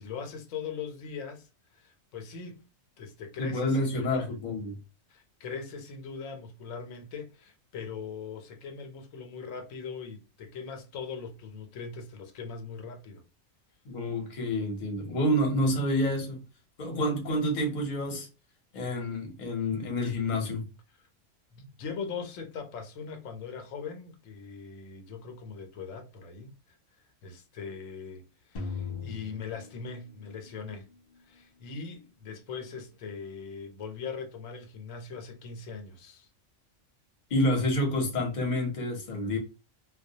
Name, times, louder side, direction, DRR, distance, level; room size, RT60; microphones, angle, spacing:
voice 1, 0.0-2.7 3.0-4.3 5.1-13.2 20.9-21.0 21.5-26.8 27.2-30.9 31.2-36.3, left 5 dB, 80° left, 1.0 m, -40 dB
voice 2, 3.4-4.8 13.9-16.4 16.8-18.3 18.7-20.6 37.3-39.4, left 1 dB, 40° left, 0.7 m, -28 dB
sound 1, 28.6-30.7, left 5 dB, 65° left, 0.4 m, -39 dB
2.2 x 2.1 x 2.6 m
omnidirectional pair, 1.3 m